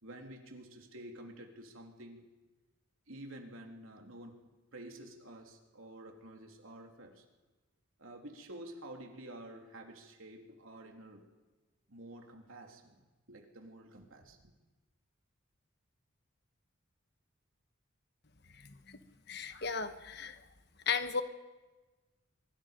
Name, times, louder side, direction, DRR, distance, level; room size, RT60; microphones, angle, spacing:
voice 1, 0.0-2.3 3.1-7.2 8.0-11.3 11.9-14.5, right 1 dB, 80° right, 2 dB, 3.2 m, -50 dB
voice 2, 18.6-19.0 19.3-20.3 20.9-21.2, left 5 dB, 50° left, 9 dB, 1.2 m, -35 dB
26.5 x 23.5 x 5.2 m, 1.2 s
head